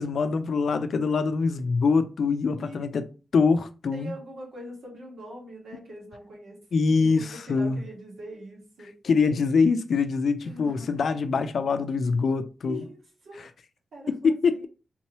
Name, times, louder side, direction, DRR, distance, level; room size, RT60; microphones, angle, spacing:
voice 1, 0.0-3.1 3.3-4.1 6.7-7.8 9.0-12.8 14.1-14.7, left 4 dB, 65° left, 0.4 m, -24 dB
voice 2, 3.9-6.6 7.0-8.9 10.4-11.1 12.6-13.5 13.9-14.6, right 1 dB, 80° right, 1.8 m, -43 dB
3.6 x 2.9 x 3.0 m
wide cardioid pair, 140°, 0 cm